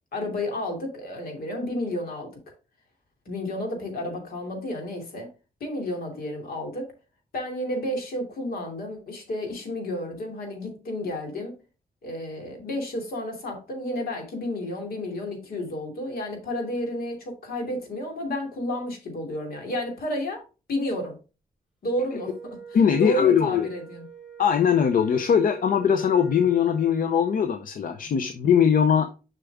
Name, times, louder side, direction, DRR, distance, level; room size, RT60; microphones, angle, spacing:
voice 1, 0.1-2.3 3.3-5.3 5.6-6.9 7.3-11.5 12.0-21.2 21.8-22.6 23.0-24.0, left 1 dB, 85° left, 2 dB, 2.7 m, -31 dB
Wind instrument woodwind instrument, 22.0-27.7, right 6 dB, ahead, 2.2 m, -45 dB
voice 2, 22.7-23.7 24.4-29.1, left 7 dB, 65° left, 9 dB, 0.6 m, -21 dB
7.0 x 5.8 x 3.5 m, 0.32 s
wide cardioid pair, 165°, 15 cm